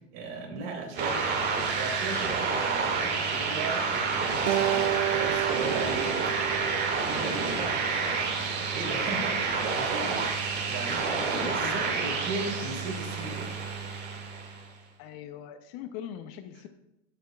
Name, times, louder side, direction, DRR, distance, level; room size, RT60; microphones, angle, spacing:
voice 1, 0.1-1.3 1.7-3.9 4.3-4.8 5.1-6.1 7.1-10.2 10.7-13.5, right 3 dB, 45° right, -1 dB, 3.3 m, -37 dB
sound 1, 0.9-14.6, right 5 dB, 30° right, 2.2 m, -29 dB
Acoustic guitar, 4.5-7.8, right 15 dB, 90° right, 0.5 m, -31 dB
voice 2, 11.4-11.8 15.0-16.7, left 10 dB, 40° left, 9 dB, 0.7 m, -40 dB
15.0 x 7.9 x 2.4 m, 0.86 s
hypercardioid pair, 130°, 36 cm